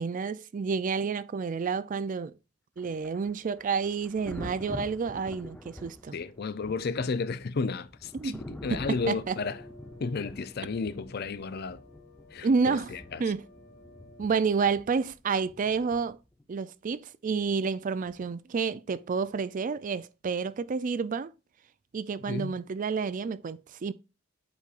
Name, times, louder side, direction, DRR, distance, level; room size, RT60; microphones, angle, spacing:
voice 1, 0.0-2.3 2.8-6.2 8.2-8.4 8.7-9.4 12.4-13.4 14.2-16.2 16.5-21.3 21.9-23.9, right 5 dB, 40° right, 0.4 m, -29 dB
Thunder, 2.8-16.4 18.1-18.3, left 1 dB, 5° left, 0.7 m, -46 dB
voice 2, 6.1-9.6 10.0-11.8 12.3-13.2 22.3-22.6, left 4 dB, 50° left, 0.5 m, -33 dB
sound 1, 8.8-14.4, left 2 dB, 70° left, 2.3 m, -54 dB
8.3 x 4.9 x 2.5 m
head